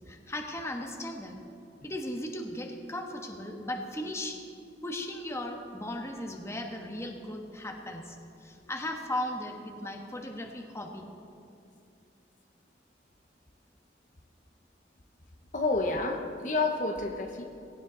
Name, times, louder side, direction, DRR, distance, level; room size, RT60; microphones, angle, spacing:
voice 1, 0.1-1.4 1.8-4.4 4.8-11.1, left 1 dB, 15° left, 2 dB, 1.3 m, -37 dB
voice 2, 15.5-17.4, left 3 dB, 45° left, 3 dB, 1.1 m, -29 dB
17.5 x 17.0 x 4.0 m, 2.5 s
head